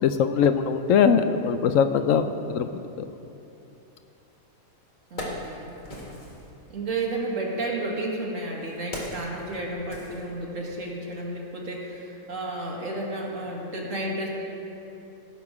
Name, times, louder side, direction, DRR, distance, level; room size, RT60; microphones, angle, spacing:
voice 1, 0.0-2.7, left 7 dB, 75° left, 9 dB, 0.9 m, -21 dB
Wood, 4.3-4.4 4.9-6.5 7.5-10.8 11.1-11.3, left 1 dB, 35° left, 1.7 m, -39 dB
voice 2, 5.1-5.7 6.7-14.3, right 2 dB, 65° right, -2 dB, 2.1 m, -32 dB
17.0 x 6.9 x 4.8 m, 2.9 s
omnidirectional pair, 1.4 m